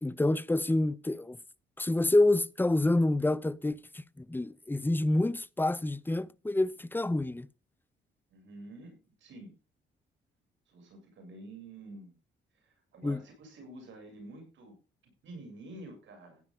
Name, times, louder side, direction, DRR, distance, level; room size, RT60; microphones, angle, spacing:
voice 1, 0.0-1.4 1.8-7.5 13.0-13.2, left 2 dB, 10° left, 0.7 m, -28 dB
voice 2, 8.3-9.6 10.7-12.2 12.5-14.8 15.0-16.4, right 2 dB, 70° right, 6.9 m, -49 dB
15.5 x 9.6 x 3.7 m
cardioid pair, 90°, 20 cm